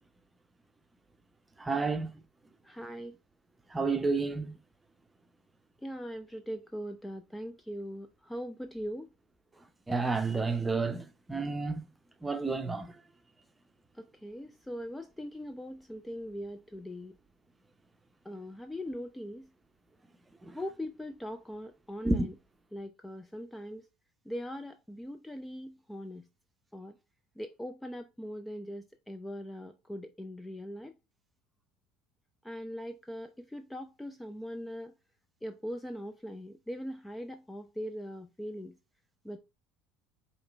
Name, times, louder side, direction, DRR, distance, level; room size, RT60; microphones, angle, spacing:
voice 1, 1.6-2.1 3.7-4.6 9.9-11.8 12.2-12.9 20.4-20.6 22.0-22.3, right 3 dB, 15° right, 0.8 m, -30 dB
voice 2, 2.6-3.1 5.8-9.1 13.9-17.1 18.2-19.5 20.5-22.3 22.7-23.9 24.3-26.2 26.7-26.9 27.4-30.9 32.4-34.9 35.4-38.7 39.2-39.4, equal, 5° left, 0.4 m, -41 dB
4.8 x 3.1 x 3.2 m
figure-of-eight pair, 65°, 0 cm